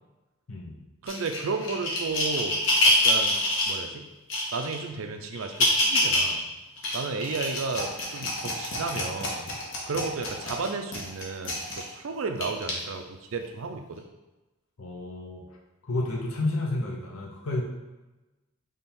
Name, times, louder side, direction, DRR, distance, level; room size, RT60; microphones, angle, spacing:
voice 1, 0.5-0.9 14.8-15.4 15.8-17.6, left 2 dB, 85° left, -1 dB, 0.7 m, -31 dB
voice 2, 1.0-2.6 2.8-3.4 3.7-4.1 4.5-6.5 6.9-9.4 9.9-14.0, right 4 dB, 75° right, 6 dB, 0.5 m, -33 dB
sound 1, 1.1-3.8 4.3-4.8 5.3-6.3 6.8-11.9 12.4-12.7 13.4-13.5, left 1 dB, 60° left, 1.1 m, -26 dB
3.7 x 3.4 x 4.2 m, 1.1 s
head